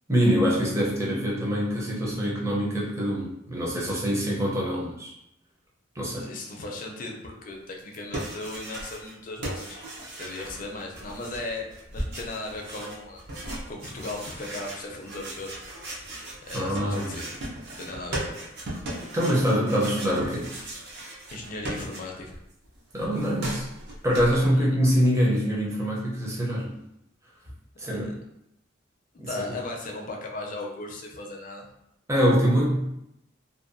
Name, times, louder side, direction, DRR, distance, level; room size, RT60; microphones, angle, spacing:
voice 1, 0.1-5.1 6.0-6.3 16.5-17.2 18.9-20.5 22.9-23.7 24.0-26.7 27.8-28.1 29.2-29.3 32.1-32.9, equal, 15° right, -4 dB, 0.5 m, -24 dB
voice 2, 6.2-9.8 10.2-13.2 13.7-15.6 16.4-17.3 17.8-18.3 21.3-22.4 24.5-24.7 27.8-28.1 29.1-31.7, left 2 dB, 45° left, 0 dB, 0.4 m, -37 dB
sound 1, 7.8-9.2 9.4-22.4 22.6-24.5, right 1 dB, 55° right, 0.6 m, -37 dB
2.6 x 2.2 x 2.5 m, 0.83 s
head